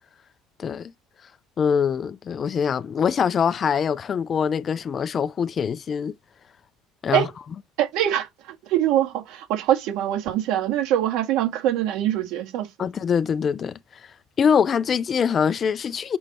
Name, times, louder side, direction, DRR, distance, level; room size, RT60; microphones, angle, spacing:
voice 1, 0.6-0.9 1.6-6.2 7.0-7.3 12.8-14.1 14.4-16.2, left 7 dB, 30° left, 0.4 m, -23 dB
voice 2, 7.8-8.3 8.6-12.7, right 12 dB, 70° right, 1.9 m, -23 dB
7.1 x 3.2 x 4.3 m
cardioid pair, 150°, 0 cm